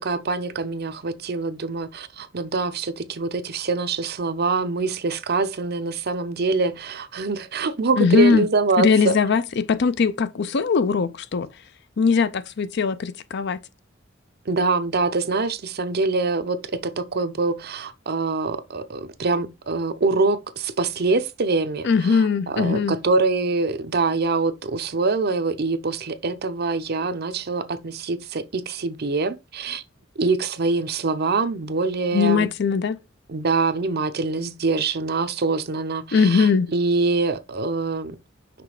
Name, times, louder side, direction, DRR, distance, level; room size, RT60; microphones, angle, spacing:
voice 1, 0.0-9.2 14.5-29.8 30.2-32.5 33.3-38.2, right 3 dB, 55° right, 0.6 m, -24 dB
voice 2, 8.0-8.5 8.8-11.5 12.0-13.6 21.8-23.0 32.1-33.0 36.1-36.7, left 5 dB, 60° left, 0.5 m, -20 dB
6.0 x 3.2 x 4.8 m
head